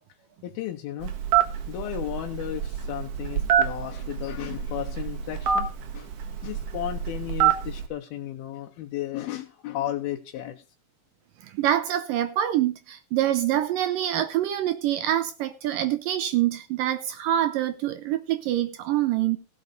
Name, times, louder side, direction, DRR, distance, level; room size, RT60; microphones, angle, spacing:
voice 1, 0.4-1.2 1.7-5.7 5.9-6.1 6.4-10.6, left 12 dB, 80° left, 2.8 m, -34 dB
Telephone, 1.0-7.9, right 9 dB, 60° right, 1.8 m, -26 dB
voice 2, 11.5-19.4, right 12 dB, 75° right, 2.1 m, -25 dB
16.0 x 6.7 x 5.1 m
omnidirectional pair, 4.5 m